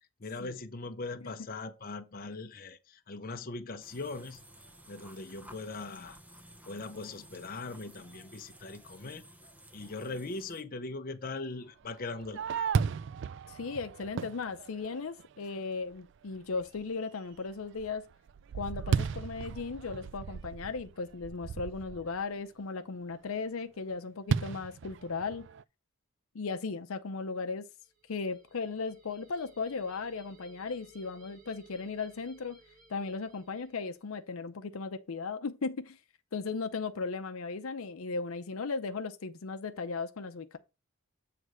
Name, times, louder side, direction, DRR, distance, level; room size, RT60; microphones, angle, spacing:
voice 1, 0.2-4.5 4.9-6.2 6.7-9.3 9.7-12.7, left 3 dB, 40° left, 0.7 m, -40 dB
sound 1, 3.8-10.6, right 1 dB, 5° right, 0.6 m, -54 dB
Fireworks, 11.9-15.4 15.9-16.0 16.5-16.9 17.3-22.2 24.3-25.6, right 6 dB, 55° right, 0.3 m, -35 dB
voice 2, 13.5-18.1 18.5-25.5 26.3-27.6 28.1-32.6 32.9-36.0 36.3-40.6, left 4 dB, 75° left, 0.6 m, -36 dB
sound 2, 27.8-34.2, right 2 dB, 40° right, 1.6 m, -60 dB
7.8 x 3.3 x 6.1 m
head